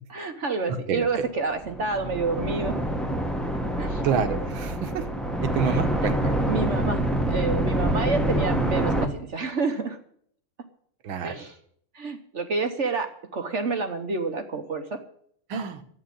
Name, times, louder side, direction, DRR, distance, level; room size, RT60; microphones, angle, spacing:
voice 1, 0.1-2.8 3.8-4.1 5.6-5.9 6.5-10.0 11.2-11.6 11.9-15.0, right 4 dB, 45° right, 7 dB, 1.0 m, -29 dB
voice 2, 0.7-1.0 4.0-5.0 5.4-6.3 11.0-11.3 15.5-15.8, right 6 dB, 65° right, 9 dB, 1.9 m, -28 dB
sound 1, 1.5-9.1, right 1 dB, ahead, 0.6 m, -26 dB
11.5 x 8.7 x 8.5 m, 0.64 s
omnidirectional pair, 2.4 m